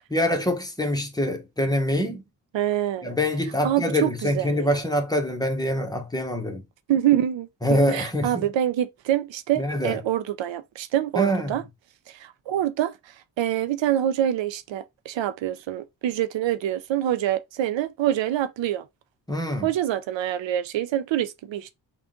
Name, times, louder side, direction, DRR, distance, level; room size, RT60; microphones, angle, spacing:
voice 1, 0.1-2.2 3.0-6.6 7.6-8.5 9.6-10.0 11.2-11.6 19.3-19.7, equal, 10° left, 1.0 m, -25 dB
voice 2, 2.5-3.1 3.6-4.8 6.9-11.6 12.2-12.9 13.4-18.8 19.6-21.7, right 11 dB, 85° right, 0.5 m, -26 dB
3.5 x 2.4 x 3.7 m
cardioid pair, 65°, 44 cm